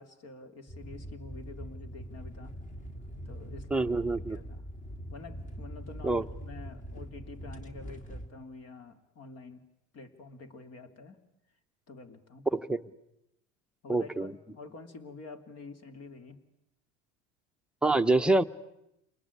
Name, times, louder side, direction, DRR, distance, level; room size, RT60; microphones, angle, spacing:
voice 1, 0.0-2.5 3.2-3.9 4.3-4.6 5.1-9.6 9.9-11.2 11.9-12.5 13.8-16.4, left 3 dB, 45° left, 9 dB, 3.2 m, -48 dB
sound 1, 0.7-8.3, equal, 20° left, 2.7 m, -43 dB
voice 2, 3.7-4.4 6.0-6.2 12.5-12.8 13.9-14.3 17.8-18.4, right 2 dB, 5° right, 5 dB, 1.0 m, -26 dB
28.5 x 20.5 x 9.9 m, 0.87 s
hypercardioid pair, 90°, 36 cm